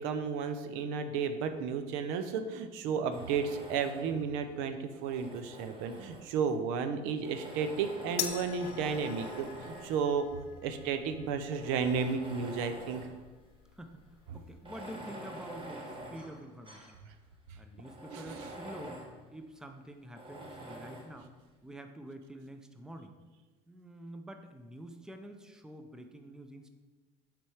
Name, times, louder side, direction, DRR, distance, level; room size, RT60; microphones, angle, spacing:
voice 1, 0.0-13.1 18.1-18.5, right 6 dB, 75° right, 8 dB, 0.6 m, -33 dB
Tools, 3.1-4.2 4.9-6.5 7.2-10.1 10.8-10.9 11.4-13.2 13.6-13.7 14.5-17.0 17.4-17.5 17.8-19.2 20.2-21.2, right 1 dB, 25° right, 1.3 m, -46 dB
sound 1, 8.2-14.7, left 11 dB, 75° left, 0.6 m, -45 dB
voice 2, 13.7-17.0 17.5-19.0 19.3-21.3 21.6-23.1 23.7-26.7, right 1 dB, 5° right, 6 dB, 0.5 m, -47 dB
6.0 x 3.4 x 4.7 m, 1.2 s
supercardioid pair, 90°, 21 cm